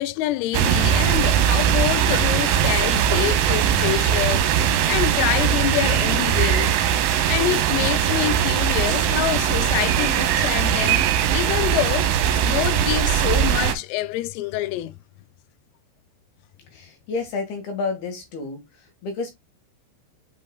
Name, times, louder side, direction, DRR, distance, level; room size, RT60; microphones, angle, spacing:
voice 1, 0.0-4.4 4.9-6.8 7.3-11.1 11.3-12.1 12.4-15.0, left 15 dB, 85° left, 3.2 m, -26 dB
sound 1, 0.5-13.7, right 9 dB, 75° right, 3.1 m, -20 dB
voice 2, 16.7-19.3, left 4 dB, 60° left, 3.1 m, -30 dB
8.4 x 5.2 x 2.3 m
omnidirectional pair, 5.9 m